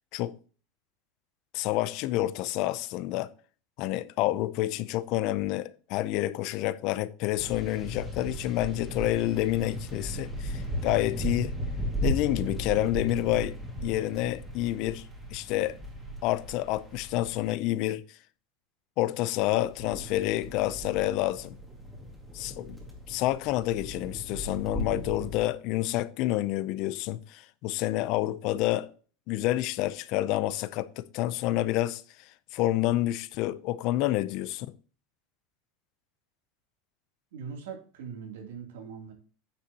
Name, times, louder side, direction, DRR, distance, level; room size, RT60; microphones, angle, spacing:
voice 1, 1.5-3.3 3.8-11.6 12.0-15.8 16.2-18.2 19.0-21.6 22.3-22.8 23.1-28.9 29.3-34.7, left 15 dB, 50° left, 0.5 m, -29 dB
sound 1, 7.4-17.5 19.2-25.4, equal, 10° right, 2.1 m, -36 dB
voice 2, 37.3-39.1, right 6 dB, 90° right, 2.9 m, -41 dB
9.6 x 6.6 x 2.9 m
supercardioid pair, 155°, 0 cm